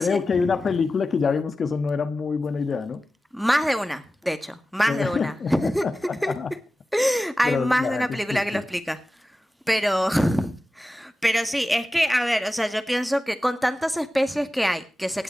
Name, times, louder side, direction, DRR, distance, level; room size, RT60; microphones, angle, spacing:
voice 1, 0.0-3.0 4.9-6.5 7.4-8.6, left 5 dB, 45° left, 1.4 m, -26 dB
voice 2, 3.3-5.9 6.2-6.3 6.9-9.0 9.7-15.2, equal, ahead, 1.9 m, -24 dB
18.0 x 8.1 x 4.5 m
hypercardioid pair, 55°, 0 cm